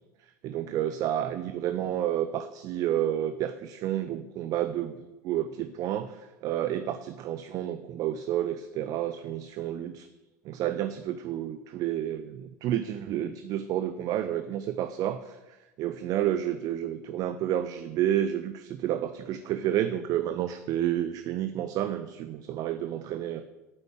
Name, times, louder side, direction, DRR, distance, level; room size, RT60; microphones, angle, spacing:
voice 1, 0.4-10.1 10.4-15.4 15.8-23.4, right 11 dB, 45° right, 11 dB, 0.7 m, -30 dB
9.1 x 8.8 x 7.7 m, 1.1 s
figure-of-eight pair, 75°, 9 cm